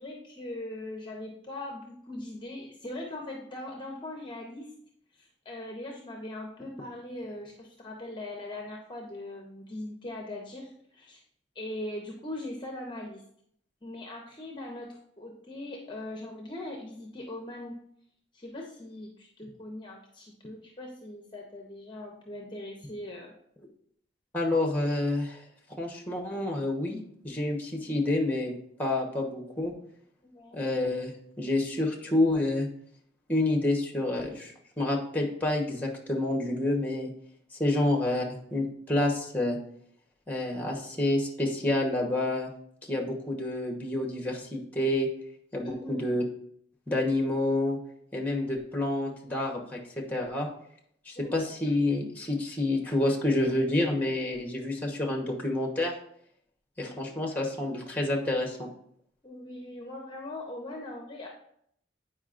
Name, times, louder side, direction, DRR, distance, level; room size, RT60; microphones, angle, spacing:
voice 1, 0.0-4.7 5.1-11.2 11.5-13.2 13.8-17.8 18.3-23.3 30.2-30.6 37.7-37.8 45.6-46.2 51.2-51.5 56.8-57.1 59.2-61.3, left 1 dB, 25° left, 0 dB, 0.7 m, -40 dB
voice 2, 24.3-25.4 25.8-27.0 27.2-28.5 28.8-29.7 30.5-32.7 33.3-37.1 37.6-39.6 40.3-42.5 42.9-45.1 45.5-46.2 46.9-47.8 48.1-50.5 51.0-55.9 56.8-58.7, left 2 dB, 10° left, 0 dB, 1.0 m, -28 dB
8.8 x 4.9 x 2.5 m, 0.70 s
head